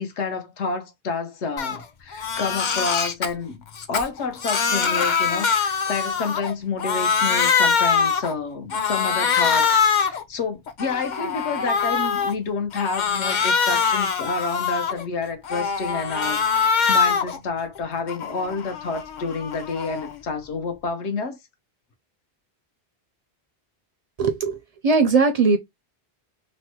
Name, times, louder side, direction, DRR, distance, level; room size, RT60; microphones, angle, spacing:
voice 1, 0.0-3.6 3.9-21.4, left 4 dB, 80° left, 1.1 m, -29 dB
Crying sobbing, 1.6-1.8 2.1-3.3 3.7-6.5 6.8-8.3 8.7-10.2 10.7-12.3 12.7-15.0 15.4-17.4 17.8-20.1, left 6 dB, 55° left, 0.6 m, -23 dB
voice 2, 24.2-25.6, right 4 dB, 50° right, 0.5 m, -19 dB
3.1 x 2.1 x 2.8 m
omnidirectional pair, 1.1 m